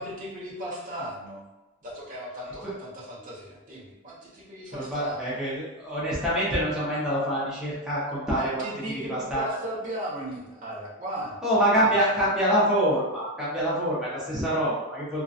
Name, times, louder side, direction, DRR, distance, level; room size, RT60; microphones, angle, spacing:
voice 1, 0.0-1.4 1.8-5.4 8.3-11.4 11.7-11.9, right 1 dB, 35° right, -5 dB, 0.7 m, -36 dB
voice 2, 4.7-8.6 9.1-9.4 11.4-15.2, equal, 5° right, -9 dB, 0.6 m, -25 dB
2.5 x 2.1 x 2.4 m, 1.1 s
head